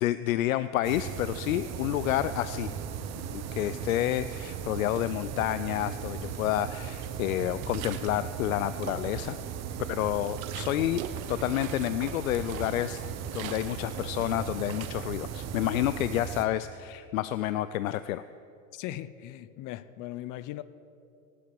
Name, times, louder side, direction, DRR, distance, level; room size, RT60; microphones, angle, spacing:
voice 1, 0.0-2.7 3.3-9.4 9.9-11.0 11.3-13.0 13.3-18.2, left 13 dB, 90° left, 0.5 m, -29 dB
sound 1, 0.8-16.4, right 8 dB, 40° right, 1.1 m, -37 dB
sound 2, 5.0-5.7 6.1-8.3 8.6-9.5 9.9-15.6, right 10 dB, 80° right, 1.0 m, -45 dB
voice 2, 18.7-20.6, left 14 dB, 50° left, 0.7 m, -39 dB
18.0 x 8.5 x 7.0 m
hypercardioid pair, 95°, 40 cm